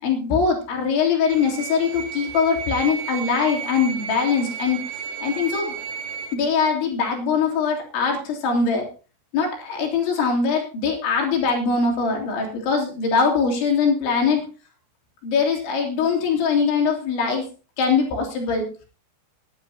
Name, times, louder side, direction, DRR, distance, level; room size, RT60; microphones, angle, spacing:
voice 1, 0.0-4.8 5.2-5.7 6.3-8.9 9.3-14.4 15.2-17.5 17.8-18.7, left 5 dB, 80° left, 0 dB, 5.7 m, -22 dB
sound 1, 1.3-6.3, right 7 dB, 80° right, 3.8 m, -33 dB
21.0 x 10.5 x 2.9 m, 0.35 s
omnidirectional pair, 5.3 m